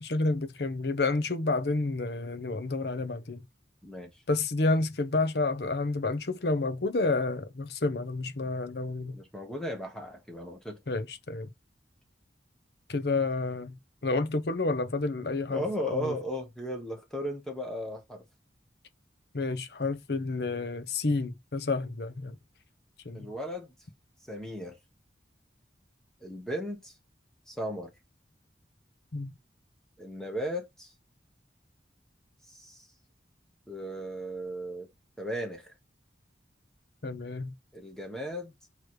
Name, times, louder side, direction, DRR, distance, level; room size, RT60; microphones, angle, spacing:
voice 1, 0.0-3.4 4.3-9.2 10.9-11.5 12.9-16.1 19.3-22.3 23.0-23.3 29.1-29.3 37.0-37.5, left 3 dB, 65° left, 0.8 m, -30 dB
voice 2, 3.8-4.2 9.0-10.8 15.5-18.2 23.1-23.7 24.3-24.8 26.2-26.9 27.5-27.9 30.0-30.9 32.5-32.9 33.7-34.9 35.2-35.7 37.7-38.5, equal, 5° left, 1.1 m, -36 dB
6.5 x 3.1 x 4.7 m
head